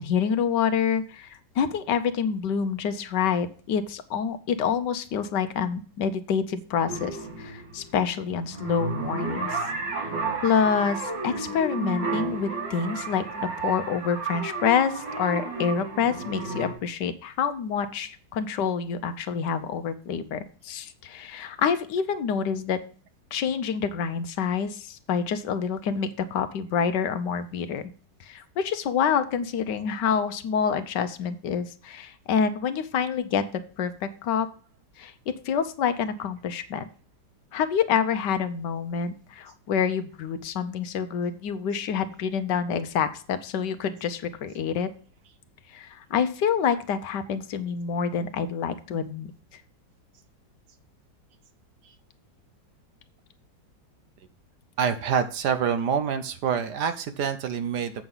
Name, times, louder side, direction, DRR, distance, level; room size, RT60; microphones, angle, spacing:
voice 1, 0.0-9.6 9.9-10.1 10.4-22.8 23.3-27.8 28.2-34.5 35.0-36.8 37.5-44.9 45.7-49.6, left 7 dB, 70° left, 11 dB, 1.4 m, -27 dB
sound 1, 6.9-16.7, right 4 dB, 85° right, 3.4 m, -32 dB
voice 2, 54.8-57.9, right 7 dB, 65° right, 10 dB, 1.3 m, -26 dB
7.9 x 6.2 x 5.5 m, 0.41 s
omnidirectional pair, 2.0 m